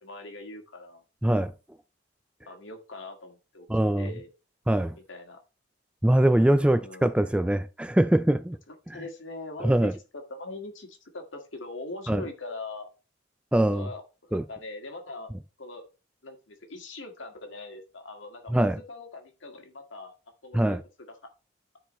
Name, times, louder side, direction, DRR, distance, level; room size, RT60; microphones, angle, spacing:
voice 1, 0.0-1.0 2.5-3.7 4.0-4.3 5.1-5.4 6.7-7.1 8.9-12.9 13.7-15.3 15.6-15.8 16.2-20.1 20.4-20.8 21.1-21.2, left 2 dB, 80° left, 1.9 m, -41 dB
voice 2, 3.7-4.1 4.7-5.0 6.0-8.6 8.9-9.0 9.6-9.9 12.1-12.2 13.5-13.9 14.3-14.4 18.5-18.8 20.5-20.8, right 1 dB, 5° right, 0.3 m, -23 dB
14.0 x 4.8 x 3.1 m
head